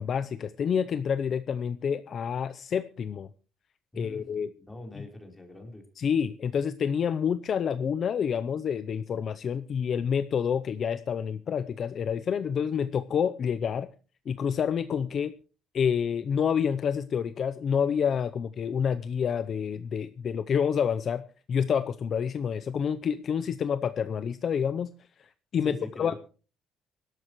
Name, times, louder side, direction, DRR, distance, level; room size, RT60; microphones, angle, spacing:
voice 1, 0.0-3.3 4.0-4.5 6.0-13.9 14.3-15.3 15.7-21.2 21.5-24.9 25.2-26.2, left 7 dB, 40° left, 13 dB, 0.6 m, -28 dB
voice 2, 3.9-4.3 4.6-5.8 25.6-26.2, left 1 dB, 10° left, 3 dB, 4.0 m, -43 dB
23.5 x 12.5 x 3.1 m, 0.36 s
cardioid pair, 160°, 0 cm